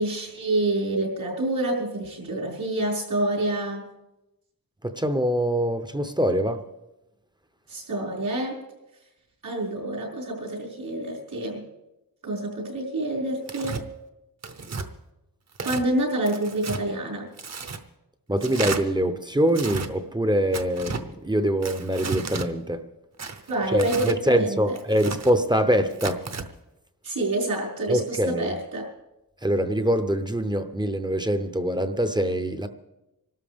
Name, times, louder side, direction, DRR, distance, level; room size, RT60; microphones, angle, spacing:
voice 1, 0.0-3.8 7.7-8.6 9.4-11.6 12.2-13.8 15.6-17.3 23.5-24.8 27.0-28.9, right 1 dB, 80° right, 5.5 m, -27 dB
voice 2, 4.8-6.6 18.3-22.8 23.7-26.3 27.9-28.5 29.4-32.7, equal, 15° right, 0.6 m, -24 dB
Tearing, 13.5-13.8 14.4-14.9 15.5-15.8 16.3-16.8 17.4-17.8 18.4-18.8 19.5-19.9 20.5-21.0 21.6-22.5 23.2-24.2 24.7-25.3 25.9-26.5, right 4 dB, 50° right, 0.9 m, -33 dB
25.5 x 13.0 x 3.5 m
wide cardioid pair, 180°, 35 cm